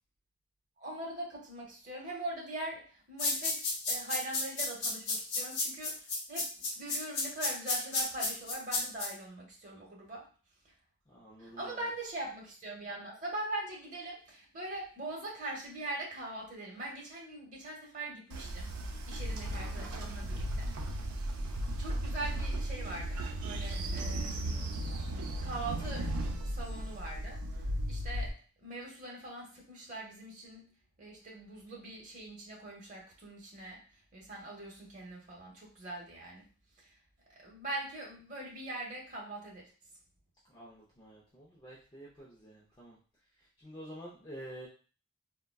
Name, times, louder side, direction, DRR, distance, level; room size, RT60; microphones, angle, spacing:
voice 1, 0.8-3.6 3.9-6.5 6.8-10.2 11.4-20.7 21.8-24.7 25.4-27.4 27.9-28.3 28.6-30.7 31.0-33.8 34.1-36.4 36.8-36.9 37.4-39.7, right 2 dB, 35° right, -2 dB, 0.9 m, -42 dB
sound 1, 3.2-9.1, left 3 dB, 50° left, 0.8 m, -32 dB
voice 2, 11.1-11.9 40.5-43.0 43.6-44.7, equal, 20° left, -8 dB, 0.5 m, -49 dB
Train, 18.3-28.3, right 1 dB, 80° right, 0.5 m, -36 dB
3.7 x 2.2 x 2.2 m, 0.39 s
head